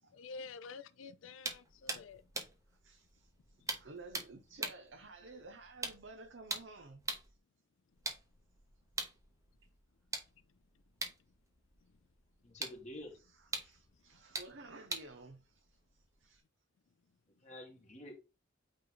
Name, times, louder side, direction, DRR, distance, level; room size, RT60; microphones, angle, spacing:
voice 1, 0.1-2.2 3.6-3.7, left 4 dB, 80° left, 0.5 m, -49 dB
sound 1, 1.4-7.4 7.9-16.4, right 3 dB, 15° right, 1.1 m, -45 dB
voice 2, 2.7-7.4 13.1-16.4 17.7-17.8, right 3 dB, 65° right, 0.8 m, -54 dB
voice 3, 12.4-13.2 13.6-13.7 17.4-18.1, left 1 dB, 35° left, 1.8 m, -49 dB
8.8 x 3.2 x 3.9 m
head